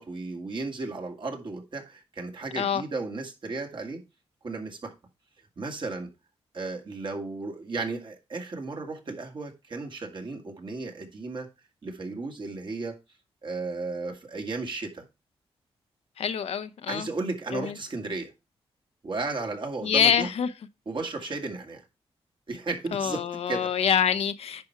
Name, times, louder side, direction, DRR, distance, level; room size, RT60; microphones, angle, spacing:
voice 1, 0.0-4.0 4.4-4.9 5.6-6.1 6.5-11.5 11.8-13.0 13.4-15.0 16.9-18.3 19.0-20.3 20.9-21.8 22.5-23.7, right 3 dB, 50° right, 2.1 m, -34 dB
voice 2, 16.2-17.1 17.5-17.7 19.8-20.5 22.9-24.6, left 8 dB, 75° left, 0.8 m, -25 dB
10.5 x 4.4 x 4.7 m
cardioid pair, 70°, 11 cm